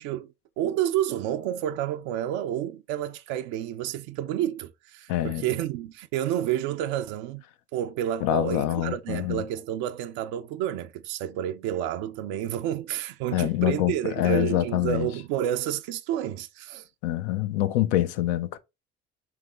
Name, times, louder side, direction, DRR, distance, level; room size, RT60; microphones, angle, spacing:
voice 1, 0.0-7.4 7.7-16.9, right 11 dB, 75° right, 0.5 m, -30 dB
voice 2, 5.1-5.4 8.2-9.4 13.3-15.1 17.0-18.6, left 13 dB, 75° left, 0.6 m, -25 dB
3.4 x 3.2 x 3.7 m
hypercardioid pair, 60°, 30 cm